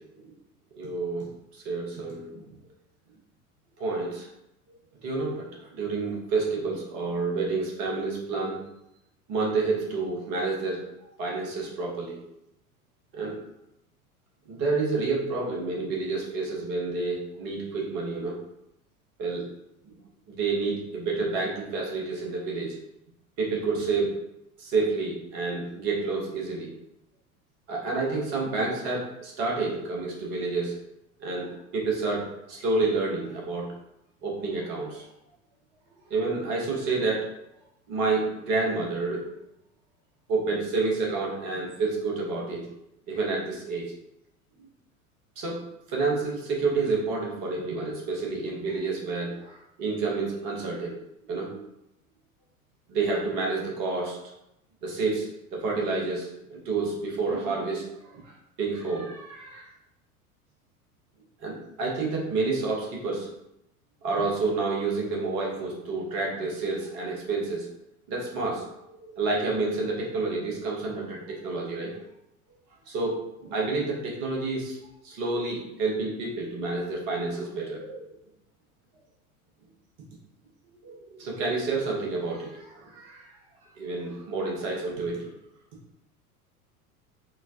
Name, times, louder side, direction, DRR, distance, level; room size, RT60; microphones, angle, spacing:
voice 1, 0.8-1.3 1.5-2.5 3.8-4.3 5.0-5.5 5.8-8.6 9.3-10.9 11.2-12.2 13.1-13.3 14.5-18.4 19.2-19.5 19.8-19.9 20.3-22.8 23.4-24.1 24.6-26.7 27.7-30.7 31.2-33.7 34.2-35.0 36.1-37.3 37.9-39.2 40.3-42.7 43.1-43.9 45.4-45.6 45.9-50.9 51.3-51.6 52.9-54.2 54.8-58.2 58.6-59.7 61.4-63.3 64.0-67.7 68.1-71.9 72.9-74.8 75.0-78.1 80.8-83.3 83.8-85.3, right 3 dB, 45° right, -2 dB, 1.2 m, -29 dB
4.3 x 2.2 x 2.8 m, 0.83 s
figure-of-eight pair, 80°, 44 cm